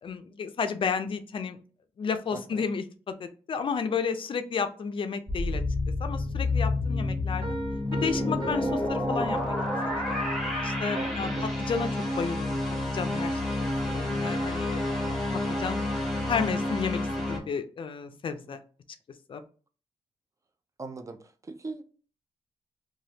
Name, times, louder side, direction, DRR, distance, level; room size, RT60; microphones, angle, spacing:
voice 1, 0.0-1.6 2.0-2.8 3.2-5.6 6.0-7.5 7.9-9.5 9.9-10.2 10.6-11.9 12.2-13.4 13.8-14.8 15.3-15.8 16.3-17.0 17.3-18.6 19.3-19.4, left 6 dB, 50° left, 0.4 m, -32 dB
voice 2, 2.3-2.7 10.9-11.5 18.0-18.2 18.5-18.6 20.8-21.8, right 3 dB, 30° right, 0.4 m, -40 dB
sound 1, 5.3-17.4, left 2 dB, ahead, 0.8 m, -29 dB
sound 2, 7.4-9.9, right 2 dB, 50° right, 1.2 m, -39 dB
3.3 x 2.2 x 2.7 m
cardioid pair, 100°, 12 cm